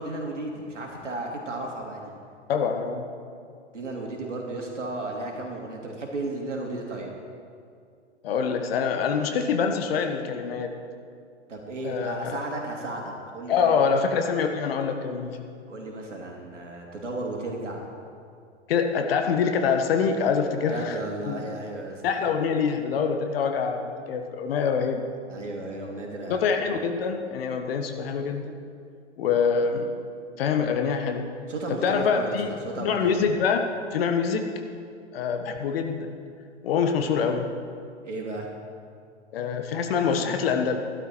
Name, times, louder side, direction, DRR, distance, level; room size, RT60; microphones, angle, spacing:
voice 1, 0.0-2.1 3.7-7.1 11.5-14.0 15.7-17.9 20.6-22.0 25.3-26.5 31.5-33.2 38.0-38.5, right 2 dB, 85° right, 0 dB, 3.1 m, -34 dB
voice 2, 2.5-3.1 8.2-10.7 11.8-12.4 13.5-15.5 18.7-21.0 21.3-21.4 22.0-25.1 26.3-28.5 29.2-29.9 30.4-31.3 31.8-33.6 33.9-34.5 35.1-36.2 36.6-37.5 39.3-40.8, left 6 dB, 55° left, 6 dB, 1.4 m, -25 dB
15.5 x 12.0 x 4.6 m, 2.3 s
hypercardioid pair, 120°, 35 cm